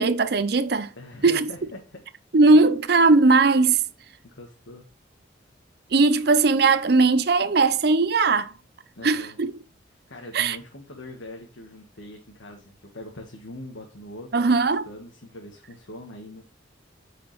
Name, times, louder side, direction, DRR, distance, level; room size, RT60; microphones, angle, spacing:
voice 1, 0.0-0.9 1.2-1.5 2.3-3.8 5.9-8.5 9.0-9.5 10.3-10.6 14.3-14.9, right 3 dB, 55° right, 0.6 m, -19 dB
voice 2, 1.0-1.8 2.5-2.6 4.2-4.9 8.9-9.3 10.1-14.5 14.8-16.4, left 1 dB, 85° left, 1.4 m, -42 dB
9.1 x 5.0 x 3.2 m
head